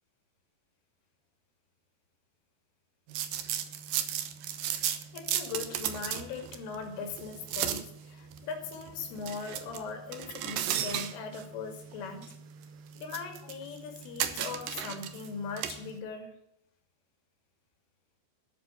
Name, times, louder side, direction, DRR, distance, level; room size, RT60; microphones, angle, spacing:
sound 1, 3.1-16.0, right 10 dB, 75° right, 2.1 m, -36 dB
voice 1, 4.9-12.4 13.0-16.3, left 5 dB, 90° left, 4 dB, 5.0 m, -40 dB
13.0 x 7.7 x 8.2 m, 0.78 s
omnidirectional pair, 5.5 m